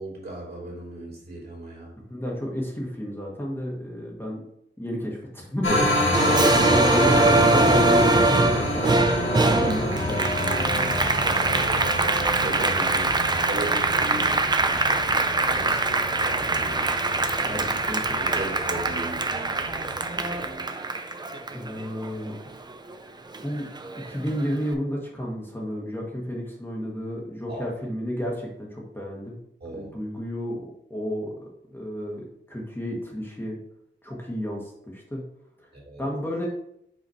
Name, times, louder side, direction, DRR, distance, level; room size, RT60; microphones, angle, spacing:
voice 1, 0.0-1.9 6.2-6.7 11.2-12.6 13.4-17.3 17.5-17.7 18.2-19.3 27.5-27.7 29.6-29.9 35.7-36.0, right 2 dB, 55° right, -4 dB, 2.7 m, -37 dB
voice 2, 2.0-4.4 4.8-5.9 6.5-8.8 9.2-11.2 12.0-12.1 12.6-13.2 17.4-18.5 21.5-22.6 23.4-23.7 24.1-29.4 29.7-31.3 31.7-33.6 34.0-35.2 35.6-35.7 36.0-36.5, equal, 10° left, -3 dB, 1.2 m, -32 dB
sound 1, 5.6-20.5, left 1 dB, 80° left, 1.7 m, -28 dB
Applause, 6.1-22.9 23.3-24.5, right 3 dB, 20° right, 0.5 m, -23 dB
5.4 x 5.0 x 4.2 m, 0.75 s
wide cardioid pair, 145°, 20 cm